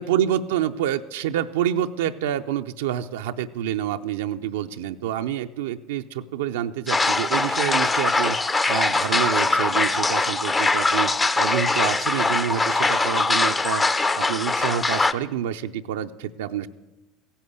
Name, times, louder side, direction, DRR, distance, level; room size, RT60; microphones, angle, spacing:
voice 1, 0.0-8.4 8.7-13.8 14.2-16.7, right 10 dB, 80° right, 6 dB, 0.5 m, -27 dB
sound 1, 6.9-15.1, left 3 dB, 20° left, 0.8 m, -22 dB
15.5 x 10.0 x 8.1 m, 1.0 s
hypercardioid pair, 75°, 0 cm